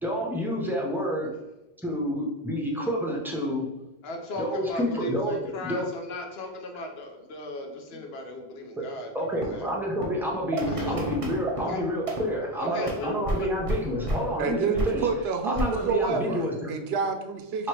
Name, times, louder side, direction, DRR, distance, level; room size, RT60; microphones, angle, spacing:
voice 1, 0.0-1.3 1.8-3.7 4.4-5.9 8.8-8.9 9.1-15.1 15.4-16.7 17.6-17.7, equal, 5° right, -3 dB, 0.6 m, -29 dB
voice 2, 4.0-9.7 10.7-11.0 11.6-11.8 12.6-13.5, left 1 dB, 75° left, 3 dB, 1.0 m, -37 dB
sound 1, 9.4-14.5 14.7-16.1, right 1 dB, 35° right, 0.8 m, -32 dB
voice 3, 14.4-14.8 15.0-17.7, right 5 dB, 75° right, 6 dB, 0.8 m, -28 dB
3.0 x 2.9 x 4.5 m, 0.99 s
omnidirectional pair, 1.1 m